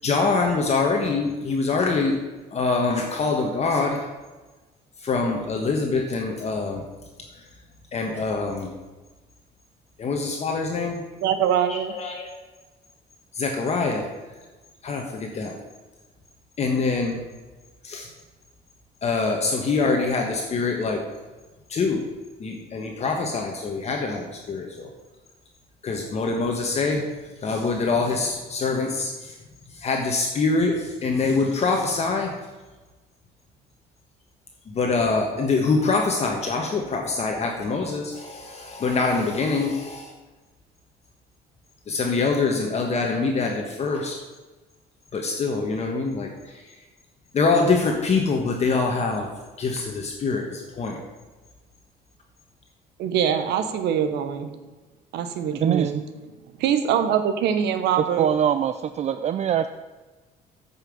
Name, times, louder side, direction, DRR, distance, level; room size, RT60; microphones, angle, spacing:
voice 1, 0.0-2.2 2.5-4.1 5.0-6.8 7.3-7.4 7.9-8.7 10.0-11.0 11.7-12.3 13.3-14.1 14.8-15.5 16.6-17.2 17.8-18.1 19.0-21.0 21.7-22.0 22.4-24.9 25.8-27.1 27.4-29.4 29.7-32.3 34.7-40.1 41.9-44.2 45.1-46.8 47.3-49.3 49.6-51.0, left 4 dB, 40° left, 1 dB, 1.3 m, -24 dB
voice 2, 11.2-12.0 53.0-54.5 55.1-56.0 56.6-58.3, right 8 dB, 80° right, 9 dB, 1.1 m, -23 dB
voice 3, 55.5-55.9 58.0-59.7, right 9 dB, 40° right, 10 dB, 0.4 m, -23 dB
9.0 x 5.7 x 7.2 m, 1.2 s
cardioid pair, 110°, 17 cm